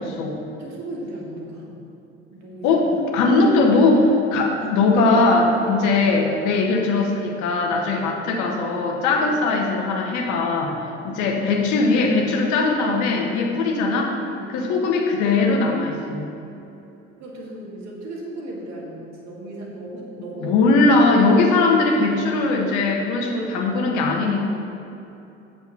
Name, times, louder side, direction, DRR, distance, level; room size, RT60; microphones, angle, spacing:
voice 1, 0.0-0.4 2.6-14.1 14.5-16.3 20.4-24.5, left 3 dB, 55° left, 1 dB, 1.3 m, -20 dB
voice 2, 0.6-1.7 2.3-2.9 5.6-5.9 8.0-8.1 9.2-9.4 14.3-14.6 17.2-20.6 23.3-23.4, right 1 dB, 50° right, -2 dB, 2.1 m, -36 dB
8.3 x 7.0 x 5.7 m, 2.9 s
figure-of-eight pair, 55°, 35 cm